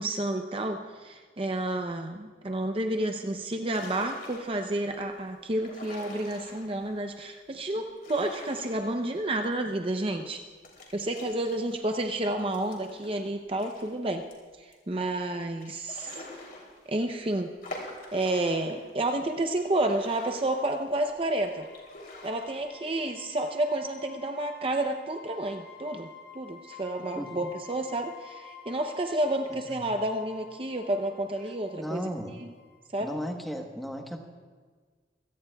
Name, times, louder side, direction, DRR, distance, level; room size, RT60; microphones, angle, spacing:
voice 1, 0.0-10.4 10.9-14.3 14.6-16.2 16.9-17.5 18.1-21.7 22.2-32.0 32.4-32.5 32.9-33.1, right 1 dB, 30° right, 4 dB, 0.7 m, -30 dB
sound 1, 3.7-4.8 5.5-6.9 7.8-9.4 9.7-9.8 10.6-13.9 14.3-14.4 14.7-14.8 15.6-17.1 17.6-18.9 19.4-21.0 21.5-22.6, left 2 dB, 55° left, 3.2 m, -46 dB
sound 2, 21.5-33.0, left 6 dB, 90° left, 3.1 m, -51 dB
voice 2, 27.1-27.5 29.5-29.8 31.7-32.3 33.0-34.3, equal, ahead, 2 dB, 1.1 m, -36 dB
25.0 x 17.0 x 2.3 m, 1.5 s
head